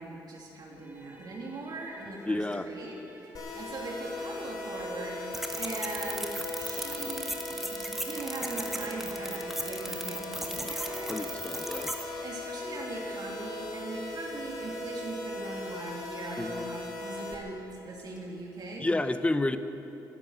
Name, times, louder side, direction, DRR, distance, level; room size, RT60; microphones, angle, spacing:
voice 1, 0.0-5.2 5.5-11.1 12.2-18.9, right 2 dB, 60° right, -2 dB, 2.9 m, -40 dB
sound 1, 0.7-12.8, equal, 20° right, 3.9 m, -52 dB
voice 2, 2.3-2.7 11.1-11.9 16.4-16.7 18.8-19.6, left 2 dB, 15° left, 10 dB, 0.9 m, -30 dB
sound 2, 3.3-17.3, left 1 dB, 60° left, 3.2 m, -38 dB
sound 3, 5.3-12.0, equal, 5° right, 1.6 m, -37 dB
14.5 x 11.5 x 8.1 m, 2.9 s
cardioid pair, 70°, 8 cm